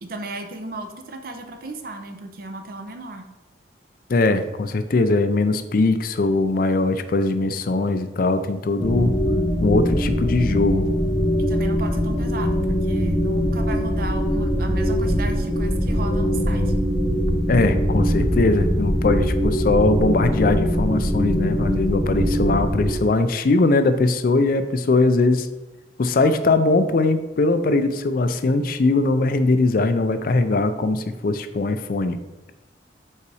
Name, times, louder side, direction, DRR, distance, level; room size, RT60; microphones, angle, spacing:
voice 1, 0.0-3.3 11.4-16.7, right 2 dB, 55° right, 6 dB, 0.7 m, -35 dB
voice 2, 4.1-9.2 9.6-10.9 17.5-25.5 26.0-32.2, left 2 dB, 50° left, 9 dB, 0.4 m, -20 dB
sound 1, 8.8-22.9, equal, 5° left, 0.6 m, -22 dB
5.5 x 4.0 x 4.8 m, 1.0 s
head